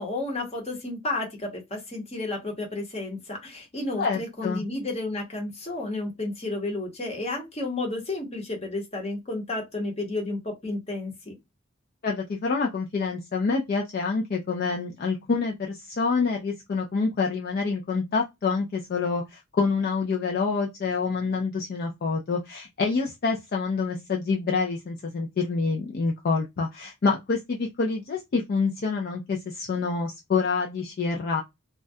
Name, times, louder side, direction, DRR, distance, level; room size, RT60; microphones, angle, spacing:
voice 1, 0.0-11.3, left 2 dB, 30° left, 0.8 m, -32 dB
voice 2, 4.0-4.6 12.0-31.4, left 4 dB, 45° left, 0.3 m, -27 dB
2.3 x 2.1 x 2.5 m
head